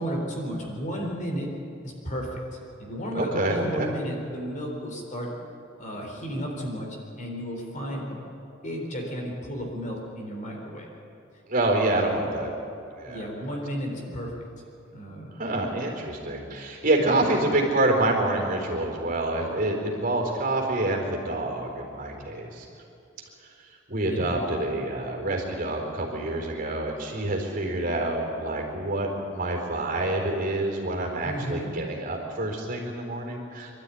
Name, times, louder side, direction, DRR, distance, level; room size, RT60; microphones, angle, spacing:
voice 1, 0.0-1.5 1.8-2.4 2.8-5.3 5.8-6.9 7.2-8.2 8.6-10.9 12.1-12.3 13.1-14.3 14.9-15.6 17.0-17.3 24.1-24.4 31.2-31.7, equal, 40° left, 0 dB, 4.0 m, -33 dB
voice 2, 3.2-3.9 11.5-12.5 13.0-13.2 15.4-22.7 23.9-33.8, right 2 dB, 45° right, 1 dB, 4.1 m, -27 dB
25.5 x 13.0 x 10.0 m, 2.7 s
head